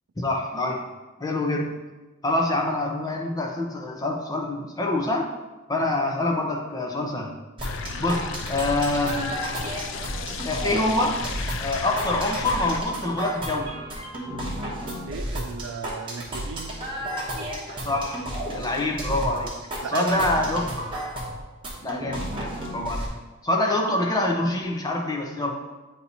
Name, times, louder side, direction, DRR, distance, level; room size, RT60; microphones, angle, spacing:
voice 1, 0.2-0.8 1.2-1.7 2.2-5.3 5.7-7.3 8.0-9.4 10.4-11.2 11.6-13.7 17.8-18.2 18.5-19.5 19.9-20.9 21.8-23.0 23.4-25.5, left 2 dB, 15° left, 0 dB, 0.6 m, -25 dB
sound 1, 7.6-12.8, left 5 dB, 60° left, 0.3 m, -34 dB
sound 2, 7.6-23.1, equal, 25° right, 1.0 m, -33 dB
voice 2, 15.1-16.8 19.8-20.7, right 5 dB, 70° right, 9 dB, 0.4 m, -35 dB
8.3 x 2.9 x 4.1 m, 1.2 s
head